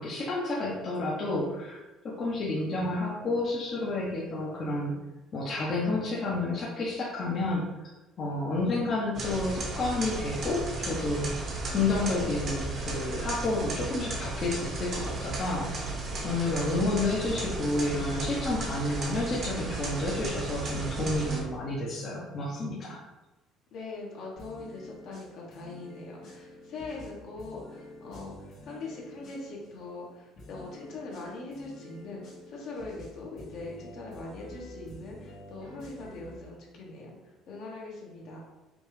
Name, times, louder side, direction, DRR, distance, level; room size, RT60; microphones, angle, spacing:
voice 1, 0.0-1.8 2.0-4.9 5.3-7.6 8.2-11.3 11.7-16.0 16.2-23.0, left 2 dB, 35° left, -5 dB, 0.8 m, -30 dB
sound 1, 9.1-21.4, right 2 dB, 40° right, 0.9 m, -35 dB
voice 2, 23.7-37.2 37.5-38.4, left 3 dB, 55° left, -2 dB, 1.2 m, -42 dB
sound 2, 24.4-29.7 30.4-36.4, left 1 dB, 75° left, 1.5 m, -48 dB
5.1 x 2.5 x 3.2 m, 1.1 s
cardioid pair, 135°, 0 cm